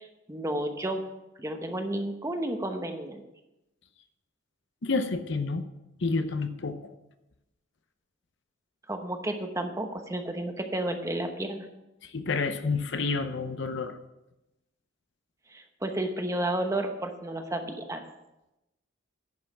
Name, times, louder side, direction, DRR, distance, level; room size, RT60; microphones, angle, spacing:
voice 1, 0.3-1.0 1.4-3.2 8.9-11.7 15.5-18.0, right 1 dB, 15° right, 5 dB, 0.9 m, -32 dB
voice 2, 4.8-5.6 6.0-6.8 12.0-14.0, left 4 dB, 60° left, 9 dB, 0.7 m, -29 dB
10.5 x 5.6 x 7.1 m, 0.95 s
head